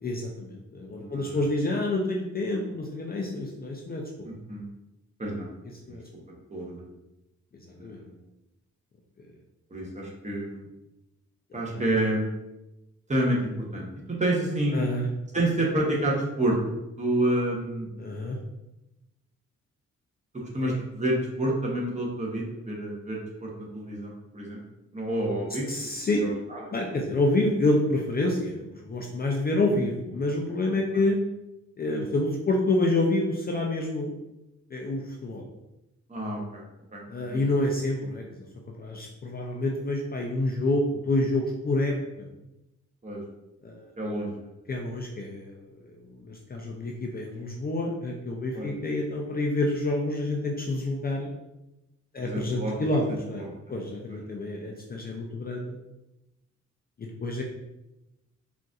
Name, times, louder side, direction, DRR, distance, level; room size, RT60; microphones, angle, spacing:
voice 1, 0.0-4.3 5.9-6.0 7.8-8.0 11.5-11.8 14.7-15.1 18.0-18.4 20.6-20.7 25.7-26.2 26.7-31.2 31.8-34.1 34.7-35.5 37.1-38.2 38.8-42.3 43.6-43.9 44.7-45.6 46.2-51.3 52.1-53.4 53.7-55.8 57.0-57.4, left 2 dB, 30° left, -1 dB, 0.4 m, -28 dB
voice 2, 0.9-1.5 4.2-4.7 5.2-5.5 5.9-6.0 6.5-6.8 7.6-8.2 9.7-10.7 11.5-12.3 13.1-14.8 15.3-16.6 17.0-17.9 20.3-24.6 24.9-25.9 26.2-27.0 30.9-31.0 31.8-32.1 36.1-36.6 36.9-37.4 43.0-43.2 44.0-44.5 48.5-48.7 52.2-52.8 53.4-53.5 54.1-54.2, right 1 dB, 25° right, -2 dB, 0.8 m, -29 dB
3.9 x 2.5 x 2.3 m, 0.95 s
cardioid pair, 100°, 30 cm